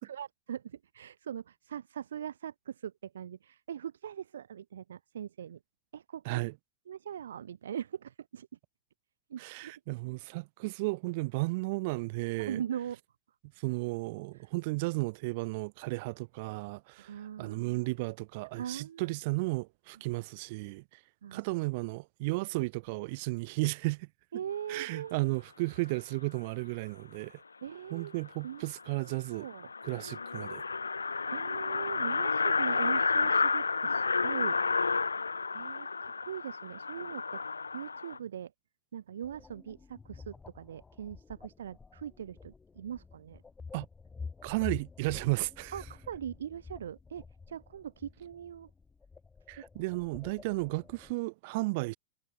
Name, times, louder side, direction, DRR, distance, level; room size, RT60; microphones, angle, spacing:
voice 1, 0.0-5.6 5.9-6.4 6.9-8.5 9.3-9.7 12.4-13.0 17.0-17.9 18.5-19.1 21.2-21.4 24.3-25.2 27.6-28.1 28.4-28.7 29.3-29.7 31.3-34.6 35.5-37.4 37.7-38.5 38.9-43.4 45.7-48.7, right 9 dB, 65° right, 1.1 m, -41 dB
voice 2, 9.4-12.6 13.6-21.0 21.3-24.1 24.7-27.4 27.9-29.5 29.8-30.6 43.7-43.9 44.4-45.8 49.5-52.0, right 25 dB, 50° right, 0.4 m, -34 dB
sound 1, 28.3-28.4 28.7-28.8 29.1-29.2 29.5-38.2, left 4 dB, 75° left, 0.7 m, -31 dB
sound 2, 39.2-51.1, left 4 dB, 15° left, 4.5 m, -48 dB
figure-of-eight pair, 90°, 0 cm